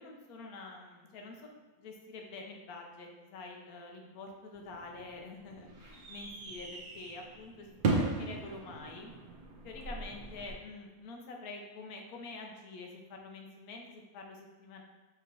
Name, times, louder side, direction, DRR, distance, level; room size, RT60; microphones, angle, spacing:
voice 1, 0.0-9.1 9.6-14.8, left 3 dB, 85° left, 1 dB, 1.1 m, -47 dB
sound 1, 4.5-10.5, right 3 dB, 80° right, 0.4 m, -37 dB
4.2 x 3.0 x 2.7 m, 1.3 s
omnidirectional pair, 1.5 m